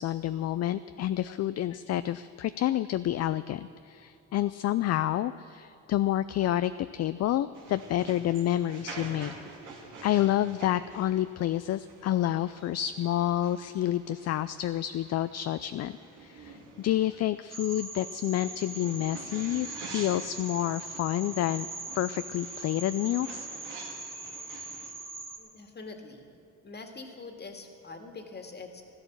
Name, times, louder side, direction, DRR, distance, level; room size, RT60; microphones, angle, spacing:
voice 1, 0.0-9.3 10.0-21.7 21.9-23.5, left 13 dB, 60° left, 13 dB, 0.4 m, -29 dB
sound 1, 7.5-24.9, right 3 dB, 90° right, 2.8 m, -48 dB
sound 2, 17.5-25.4, right 2 dB, 20° right, 2.3 m, -41 dB
voice 2, 25.4-26.3 26.6-28.8, left 3 dB, 35° left, 5 dB, 2.0 m, -44 dB
13.5 x 12.0 x 7.3 m, 2.8 s
cardioid pair, 90°, 30 cm